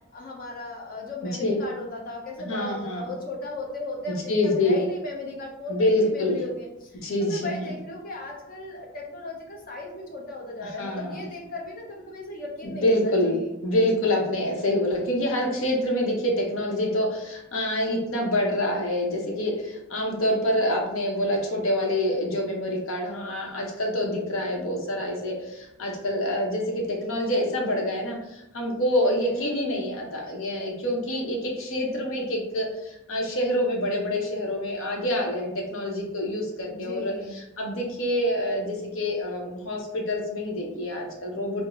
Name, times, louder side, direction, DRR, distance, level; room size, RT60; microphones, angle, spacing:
voice 1, 0.1-13.5 29.0-29.5 36.7-37.4, left 2 dB, 45° left, -1 dB, 0.7 m, -36 dB
voice 2, 2.4-3.0 4.3-4.8 5.7-6.4 7.0-7.6 10.6-11.2 12.7-13.4 13.6-41.7, left 1 dB, 90° left, 1 dB, 0.8 m, -26 dB
3.7 x 2.0 x 3.1 m, 0.88 s
head